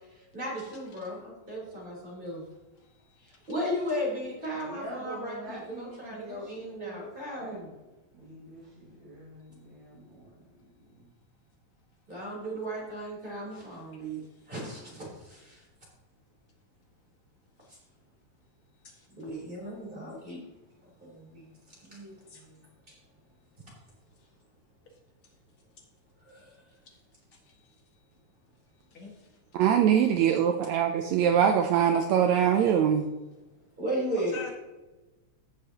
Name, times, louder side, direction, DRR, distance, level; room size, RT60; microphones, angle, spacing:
voice 1, 0.3-2.5 3.2-7.7 12.1-15.6 19.1-20.4 21.0-22.5 22.9-23.0 26.2-26.6 30.9-31.0 33.8-34.4, equal, 15° right, -4 dB, 3.7 m, -36 dB
voice 2, 2.8-3.2 17.6-17.8 18.8-19.1 22.3-22.4 27.4-27.7 28.9-29.3 34.2-34.5, left 5 dB, 45° left, 0 dB, 2.5 m, -46 dB
voice 3, 4.5-7.6 8.1-11.1, right 2 dB, 40° right, -6 dB, 2.4 m, -44 dB
voice 4, 29.5-33.1, right 8 dB, 75° right, 5 dB, 1.7 m, -23 dB
16.0 x 6.7 x 2.9 m, 1.1 s
omnidirectional pair, 3.5 m